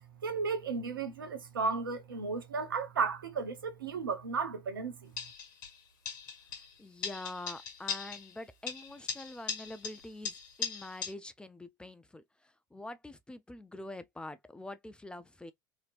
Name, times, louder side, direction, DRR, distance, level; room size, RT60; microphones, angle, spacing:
voice 1, 0.2-5.1, right 4 dB, 80° right, 0.8 m, -34 dB
sound 1, 5.2-5.8 6.1-6.7 7.0-8.4 8.7-11.1, left 6 dB, 70° left, 1.1 m, -39 dB
voice 2, 6.8-12.2 12.7-15.5, left 2 dB, 10° left, 0.4 m, -45 dB
3.0 x 2.8 x 2.4 m
figure-of-eight pair, 75°, 11 cm